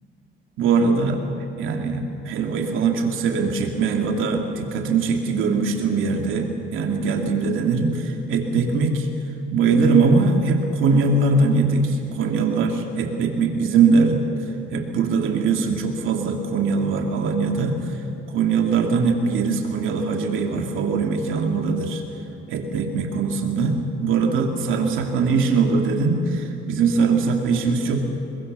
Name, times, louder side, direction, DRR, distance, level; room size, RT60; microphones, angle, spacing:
voice 1, 0.6-1.2 1.6-9.1 9.5-14.2 14.7-18.0 18.3-22.0 22.5-28.2, right 4 dB, 85° right, 3 dB, 2.9 m, -21 dB
26.0 x 22.5 x 7.0 m, 2.6 s
cardioid pair, 90°, 20 cm